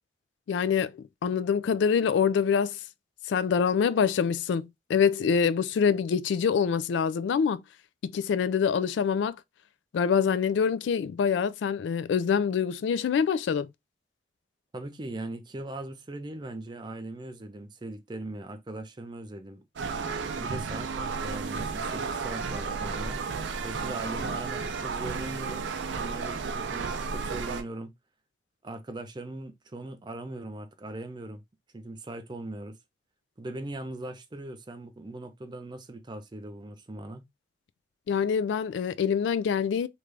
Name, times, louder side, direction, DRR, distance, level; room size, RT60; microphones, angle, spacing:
voice 1, 0.5-2.8 3.3-7.6 8.0-9.4 9.9-13.7 38.1-39.9, left 6 dB, 75° left, 0.3 m, -25 dB
voice 2, 14.7-19.6 20.4-23.2 23.6-27.9 28.6-31.4 31.7-32.8 33.4-37.3, right 2 dB, 25° right, 0.4 m, -40 dB
sound 1, 19.8-27.6, right 5 dB, 80° right, 0.5 m, -33 dB
3.2 x 2.5 x 3.2 m
head